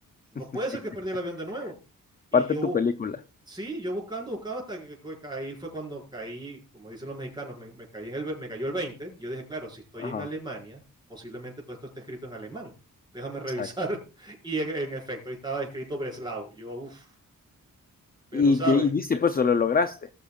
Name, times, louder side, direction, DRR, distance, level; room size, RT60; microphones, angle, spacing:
voice 1, 0.3-1.7 2.3-2.8 3.5-10.8 11.1-12.7 13.1-17.1 18.3-18.9, right 2 dB, 10° right, 5.1 m, -34 dB
voice 2, 2.3-3.2 10.0-10.3 13.6-13.7 18.3-20.1, left 5 dB, 25° left, 0.5 m, -23 dB
20.0 x 6.7 x 2.3 m
wide cardioid pair, 135°, 34 cm